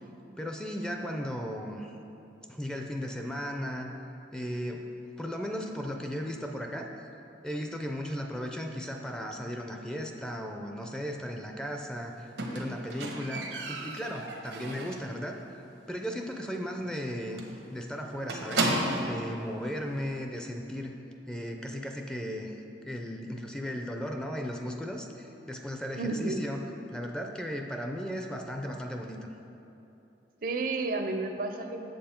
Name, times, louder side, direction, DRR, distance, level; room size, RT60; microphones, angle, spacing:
voice 1, 0.4-2.0 2.5-3.9 4.3-4.8 5.2-6.9 7.4-15.4 15.9-17.4 17.7-20.9 21.3-26.6 26.9-29.3, equal, 5° left, 2 dB, 0.4 m, -36 dB
Squeak, 12.4-15.2 15.5-15.9 16.2-16.3 16.6-16.7 17.0-17.1 17.4-19.2 20.1-20.2, right 2 dB, 90° right, 1.0 m, -33 dB
voice 2, 26.0-26.5 30.4-31.9, right 3 dB, 50° right, 6 dB, 0.5 m, -31 dB
7.6 x 7.0 x 4.3 m, 2.9 s
head